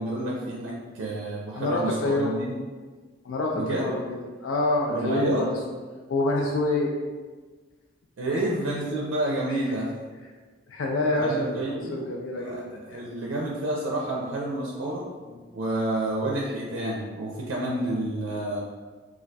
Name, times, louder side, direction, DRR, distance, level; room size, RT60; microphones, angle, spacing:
voice 1, 0.0-2.5 3.5-3.9 4.9-5.5 8.2-9.9 11.2-12.1 12.4-15.0 15.5-18.6, right 1 dB, 85° right, -3 dB, 0.4 m, -29 dB
voice 2, 1.5-2.4 3.2-5.6 6.1-6.9 8.3-8.4 9.5-9.8 10.7-13.0 15.3-15.4 17.6-17.8, left 2 dB, 85° left, 0 dB, 0.4 m, -27 dB
2.3 x 2.2 x 3.9 m, 1.4 s
head